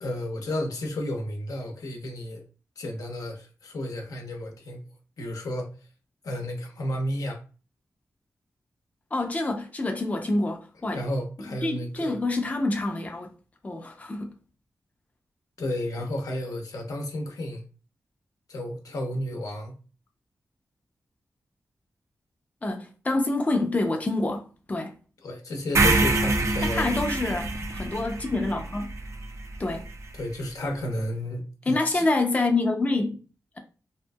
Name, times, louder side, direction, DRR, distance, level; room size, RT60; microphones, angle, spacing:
voice 1, 0.0-2.4 2.8-4.8 5.2-5.7 6.2-7.4 10.9-12.2 15.6-17.6 18.5-19.7 25.2-27.0 30.1-32.0, left 1 dB, 90° left, 0.7 m, -32 dB
voice 2, 9.1-11.0 11.6-13.3 13.6-14.3 22.6-24.9 26.6-28.9 29.6-29.9 31.7-33.2, left 2 dB, 25° left, 0.5 m, -27 dB
sound 1, 25.7-29.9, right 2 dB, 55° right, 0.4 m, -26 dB
2.7 x 2.6 x 2.2 m
wide cardioid pair, 100°, 6 cm